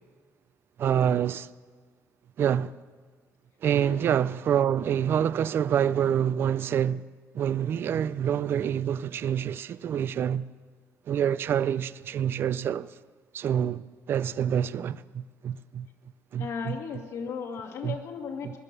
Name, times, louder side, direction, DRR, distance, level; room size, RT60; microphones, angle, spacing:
voice 1, 0.8-1.5 2.4-2.7 3.6-7.0 7.3-10.4 11.1-12.9 13.3-15.9 16.3-16.8 17.8-18.0 18.4-18.5, right 9 dB, 45° right, 0.4 m, -27 dB
voice 2, 16.4-18.6, left 5 dB, 65° left, 2.0 m, -36 dB
19.5 x 11.0 x 6.7 m
cardioid pair, 165°, 6 cm